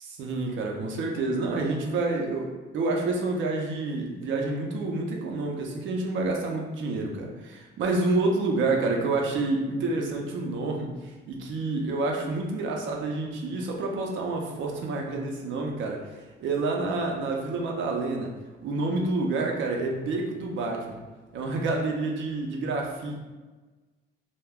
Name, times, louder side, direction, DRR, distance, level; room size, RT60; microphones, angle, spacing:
voice 1, 0.2-18.3 18.6-21.0 21.3-23.2, right 3 dB, 75° right, 1 dB, 0.5 m, -28 dB
2.2 x 2.1 x 3.4 m, 1.2 s
cardioid pair, 90°, 20 cm